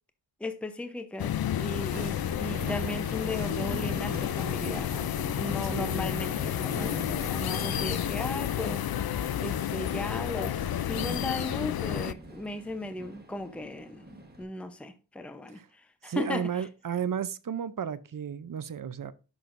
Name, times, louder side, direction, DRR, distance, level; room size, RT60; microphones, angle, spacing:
voice 1, 0.4-16.6, left 1 dB, 5° left, 0.7 m, -37 dB
sound 1, 1.2-12.1, left 11 dB, 60° left, 0.5 m, -31 dB
Train, 1.9-14.4, right 2 dB, 20° right, 1.3 m, -43 dB
voice 2, 5.7-6.0 15.5-15.7 16.0-19.1, right 8 dB, 50° right, 0.6 m, -33 dB
10.5 x 6.2 x 2.6 m
wide cardioid pair, 115°, 43 cm